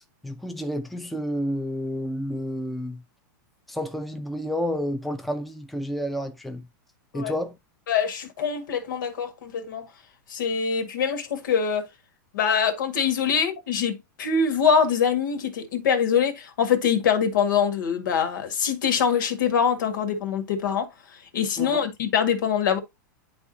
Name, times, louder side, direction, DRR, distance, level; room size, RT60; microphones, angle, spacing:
voice 1, 0.2-3.0 3.7-6.6 7.1-7.6 21.6-21.8, equal, ahead, 0.6 m, -30 dB
voice 2, 7.9-9.9 10.3-11.9 12.3-20.9 21.3-22.8, left 7 dB, 80° left, 1.8 m, -24 dB
10.5 x 3.7 x 2.7 m
supercardioid pair, 140°, 11 cm